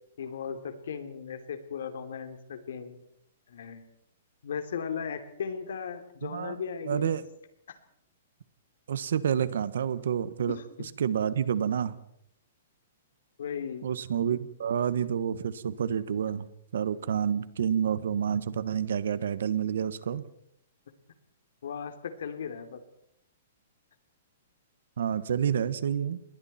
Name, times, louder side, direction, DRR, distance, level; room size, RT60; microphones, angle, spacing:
voice 1, 0.2-3.0 3.5-3.9 4.4-7.1 7.7-7.8 10.5-10.9 13.4-13.9 21.6-22.8, left 7 dB, 75° left, 8 dB, 3.2 m, -37 dB
voice 2, 6.2-6.5 6.9-7.2 8.9-10.6 11.0-11.9 13.8-16.5 16.7-20.2 25.0-26.2, right 8 dB, 75° right, 15 dB, 1.5 m, -28 dB
28.0 x 21.5 x 4.4 m, 0.75 s
hypercardioid pair, 165°, 0 cm